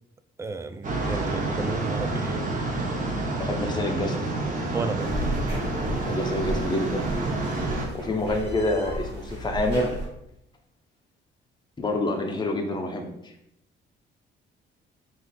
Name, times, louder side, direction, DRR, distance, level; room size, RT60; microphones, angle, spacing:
voice 1, 0.4-2.4 4.7-5.1, right 3 dB, 15° right, 11 dB, 0.3 m, -33 dB
sound 1, 0.8-7.9, right 2 dB, 40° right, 1.0 m, -28 dB
voice 2, 3.4-4.2 6.0-7.0 7.9-10.0 11.8-13.3, left 1 dB, 20° left, 2 dB, 0.8 m, -27 dB
sound 2, 5.0-10.1, right 1 dB, 60° right, 1.4 m, -33 dB
4.0 x 2.7 x 4.2 m, 0.79 s
cardioid pair, 90°, 20 cm